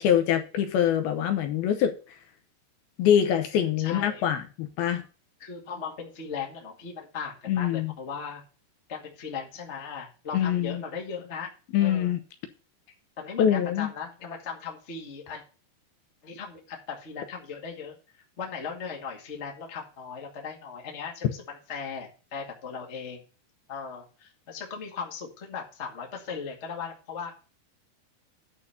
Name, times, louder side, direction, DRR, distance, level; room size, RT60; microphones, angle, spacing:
voice 1, 0.0-1.9 3.0-5.0 7.5-7.9 10.3-10.8 11.7-12.2 13.4-13.9, left 9 dB, 75° left, 2.6 m, -24 dB
voice 2, 3.8-4.2 5.4-8.4 8.9-11.5 11.8-12.1 13.2-15.4 16.2-18.0 18.4-23.2 23.7-27.3, left 6 dB, 30° left, 1.4 m, -38 dB
11.0 x 4.2 x 7.0 m
omnidirectional pair, 4.8 m